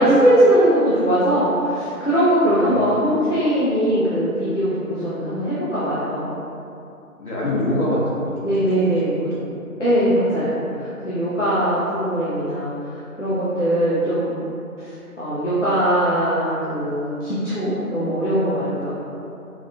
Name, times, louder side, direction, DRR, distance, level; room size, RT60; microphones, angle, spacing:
voice 1, 0.0-6.3 8.4-9.3 9.8-12.7 13.2-14.3 14.8-18.9, right 1 dB, 50° left, -10 dB, 0.7 m, -20 dB
voice 2, 2.5-2.9 7.2-8.0 9.0-9.6 18.8-18.9, left 1 dB, 75° left, -7 dB, 1.2 m, -25 dB
4.7 x 2.6 x 2.2 m, 2.7 s
figure-of-eight pair, 175°, 45 cm